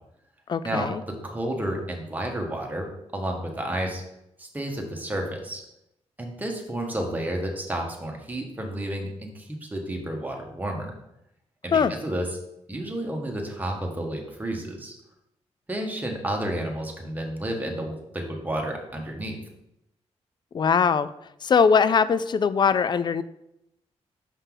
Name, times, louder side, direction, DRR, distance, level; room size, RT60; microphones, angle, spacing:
voice 1, 0.5-1.0 11.7-11.9 20.5-21.1 21.4-23.2, left 6 dB, 40° left, 15 dB, 0.4 m, -21 dB
voice 2, 1.2-2.9 3.1-4.0 4.4-5.6 6.2-10.9 11.6-12.2 12.7-14.9 15.7-19.4, right 1 dB, 15° right, 1 dB, 1.5 m, -31 dB
6.0 x 5.4 x 3.9 m, 0.83 s
cardioid pair, 90°, 11 cm